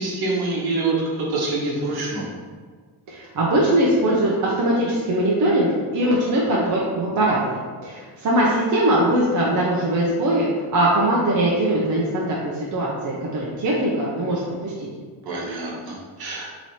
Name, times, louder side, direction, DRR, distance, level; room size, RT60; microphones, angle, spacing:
voice 1, 0.0-2.3 15.2-16.5, right 3 dB, 65° right, -3 dB, 1.1 m, -26 dB
voice 2, 3.1-5.7 5.9-7.4 7.8-14.9, right 1 dB, 45° right, -5 dB, 0.7 m, -21 dB
3.1 x 3.0 x 4.1 m, 1.5 s
cardioid pair, 120°, 41 cm